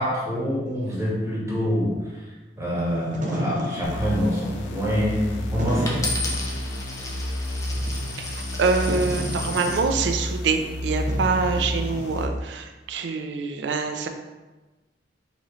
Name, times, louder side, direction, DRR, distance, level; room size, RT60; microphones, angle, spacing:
voice 1, 0.0-1.9 2.6-6.0, equal, 15° right, -6 dB, 0.9 m, -25 dB
Wind / Fire, 2.9-12.4, right 1 dB, 45° right, 0.7 m, -34 dB
sound 1, 3.8-12.3, equal, 85° left, 0.5 m, -30 dB
Coin (dropping), 5.9-9.9 10.6-11.0, left 2 dB, 20° left, 0.5 m, -33 dB
voice 2, 7.8-14.1, right 4 dB, 70° right, 6 dB, 0.4 m, -25 dB
3.9 x 2.9 x 3.0 m, 1.2 s
head